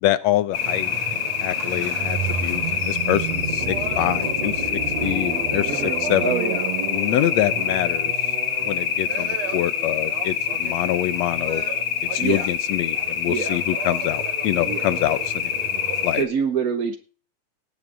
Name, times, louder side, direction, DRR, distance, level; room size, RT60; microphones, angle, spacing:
voice 1, 0.0-6.3 6.9-8.1 8.6-11.6 12.0-15.7 16.0-16.3, left 13 dB, 75° left, 16 dB, 1.9 m, -26 dB
sound 1, 0.5-16.2, left 8 dB, 55° left, 1.8 m, -26 dB
sound 2, 0.5-16.1, right 8 dB, 65° right, 2.6 m, -33 dB
voice 2, 5.7-6.7 12.2-12.5 13.3-13.6 14.6-14.9 16.1-17.0, right 6 dB, 80° right, 6 dB, 0.8 m, -26 dB
19.0 x 7.1 x 3.9 m, 0.37 s
omnidirectional pair, 3.4 m